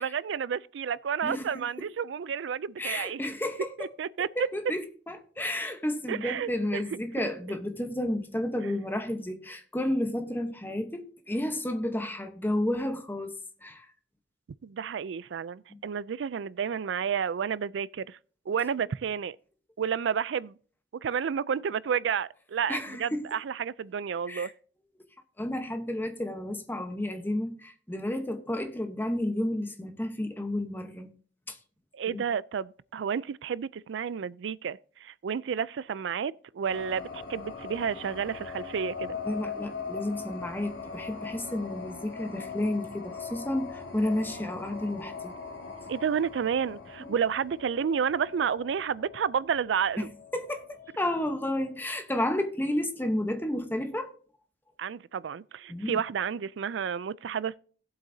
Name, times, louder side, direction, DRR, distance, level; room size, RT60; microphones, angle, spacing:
voice 1, 0.0-3.2 3.8-4.3 6.1-6.8 14.6-18.2 18.5-19.4 19.8-20.6 21.0-24.5 31.9-39.2 45.9-50.1 54.8-57.6, right 7 dB, 85° right, 0.4 m, -31 dB
voice 2, 1.2-1.9 2.8-3.9 4.4-13.3 13.6-13.9 15.7-15.8 22.7-23.3 24.3-24.5 25.4-31.1 31.5-31.6 32.1-32.2 39.2-45.4 47.0-47.1 50.0-50.1 50.3-54.1 55.7-56.0, left 1 dB, 10° left, 1.0 m, -31 dB
sound 1, 36.6-51.7, left 5 dB, 85° left, 2.1 m, -41 dB
17.5 x 7.9 x 2.7 m
head